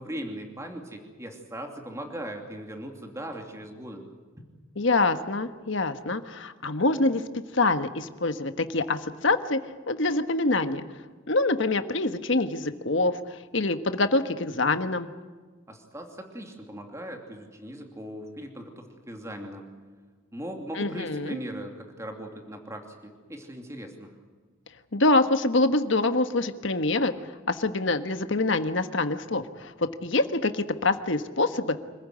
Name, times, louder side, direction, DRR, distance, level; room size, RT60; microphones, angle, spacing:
voice 1, 0.0-4.1 4.4-4.5 15.7-19.7 20.3-24.1, right 1 dB, 15° right, 3 dB, 2.8 m, -39 dB
voice 2, 4.8-7.2 7.5-9.6 9.9-10.8 11.3-15.1 20.8-21.4 24.9-27.1 27.5-31.8, left 2 dB, 60° left, 9 dB, 1.4 m, -25 dB
26.5 x 15.0 x 9.6 m, 1.4 s
head